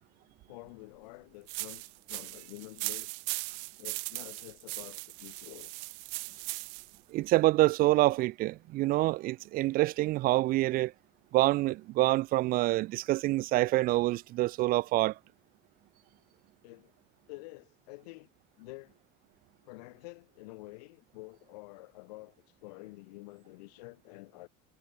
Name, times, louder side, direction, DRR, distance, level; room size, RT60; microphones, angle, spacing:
voice 1, 0.5-3.4 3.8-5.7 16.6-16.9 17.3-18.3 18.6-19.0 19.6-24.5, left 24 dB, 85° left, 4.6 m, -49 dB
sound 1, 1.5-7.0, right 37 dB, 65° right, 1.9 m, -39 dB
voice 2, 7.1-10.9 11.3-15.2, right 18 dB, 45° right, 1.2 m, -26 dB
cardioid pair, 155°, 20 cm